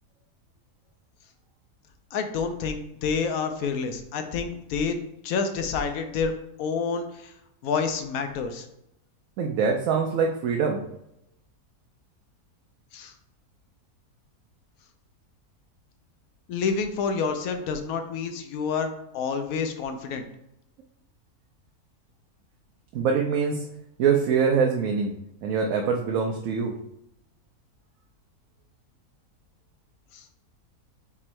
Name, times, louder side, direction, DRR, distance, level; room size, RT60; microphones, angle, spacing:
voice 1, 2.1-6.3 6.6-7.3 7.6-8.7 12.9-13.1 16.5-20.2 30.1-30.2, left 5 dB, 70° left, 6 dB, 1.0 m, -28 dB
voice 2, 9.4-10.8 22.9-23.7 24.0-25.1 25.4-26.7, right 6 dB, 70° right, 1 dB, 0.9 m, -24 dB
3.6 x 3.0 x 4.3 m, 0.81 s
omnidirectional pair, 1.6 m